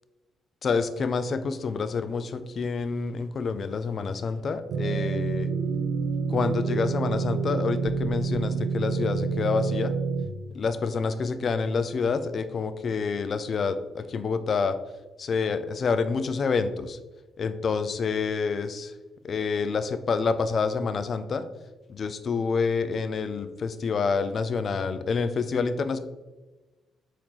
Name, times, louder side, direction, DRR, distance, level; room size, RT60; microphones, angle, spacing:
voice 1, 0.6-5.5 6.3-9.9 10.5-14.8 15.2-17.0 17.4-18.9 19.2-21.5 21.9-26.0, left 5 dB, 50° left, 11 dB, 0.3 m, -28 dB
sound 1, 4.7-10.3, right 5 dB, 70° right, 0.3 m, -28 dB
4.4 x 3.6 x 3.0 m, 1.2 s
cardioid pair, 90°, 0 cm